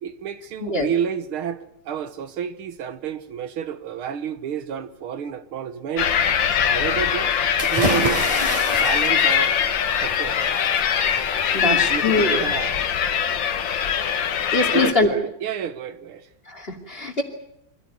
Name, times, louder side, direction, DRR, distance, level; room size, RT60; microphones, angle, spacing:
voice 1, 0.0-6.1 6.7-8.2 8.8-9.6 10.0-10.4 11.5-12.9 14.7-16.3, right 8 dB, 85° right, 2.1 m, -30 dB
sound 1, 6.0-14.9, left 8 dB, 65° left, 1.9 m, -22 dB
sound 2, 7.6-12.4, equal, 15° right, 3.7 m, -29 dB
voice 2, 11.5-12.4 14.5-15.1 16.5-17.2, left 2 dB, 25° left, 3.0 m, -23 dB
25.0 x 16.0 x 9.5 m
omnidirectional pair, 2.3 m